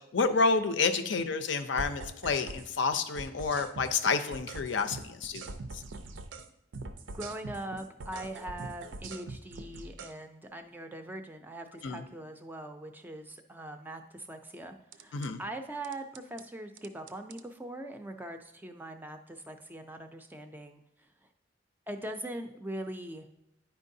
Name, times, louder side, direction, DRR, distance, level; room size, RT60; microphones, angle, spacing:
voice 1, 0.0-5.4 11.8-12.0 15.1-15.4, left 4 dB, 70° left, 8 dB, 0.5 m, -29 dB
sound 1, 1.8-2.7 2.9-6.5 6.7-10.1 14.9-15.3 15.8-16.4 16.8-17.4, right 3 dB, 75° right, 0.5 m, -43 dB
voice 2, 7.1-21.1 21.9-23.3, right 1 dB, 10° right, 6 dB, 0.4 m, -42 dB
9.9 x 4.5 x 2.7 m, 0.85 s
head